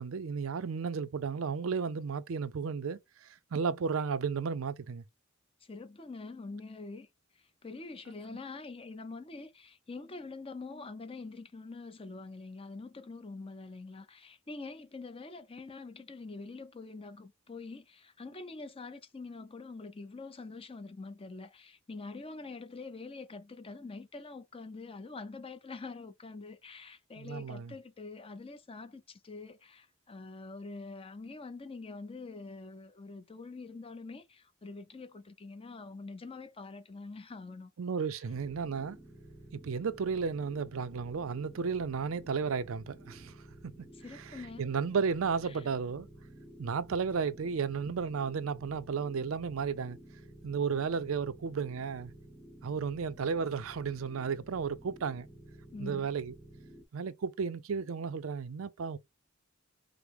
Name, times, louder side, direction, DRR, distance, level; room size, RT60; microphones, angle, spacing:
voice 1, 0.0-5.0 27.2-27.7 37.8-39.0 39.5-43.3 43.6-43.9 44.6-46.1 46.6-50.0 50.4-52.1 52.6-55.3 55.8-56.3 56.9-59.0, right 5 dB, 75° right, 0.5 m, -33 dB
voice 2, 5.6-7.1 7.3-37.7 44.0-44.7 45.5-45.6 55.7-56.1, left 3 dB, 25° left, 0.6 m, -45 dB
sound 1, 38.3-56.8, right 1 dB, 5° right, 0.8 m, -53 dB
5.0 x 2.1 x 4.6 m
head